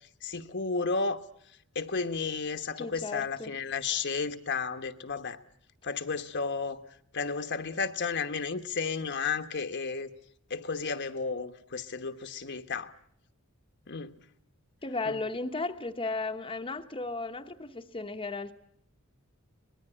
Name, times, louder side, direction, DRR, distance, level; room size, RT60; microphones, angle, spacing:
voice 1, 0.2-1.2 1.7-5.4 5.8-6.8 7.1-10.1 10.5-12.9 13.9-14.1 15.1-15.2, left 4 dB, 55° left, 1.2 m, -32 dB
voice 2, 2.8-3.5 14.8-18.5, left 3 dB, 25° left, 1.0 m, -35 dB
24.0 x 20.0 x 9.9 m
head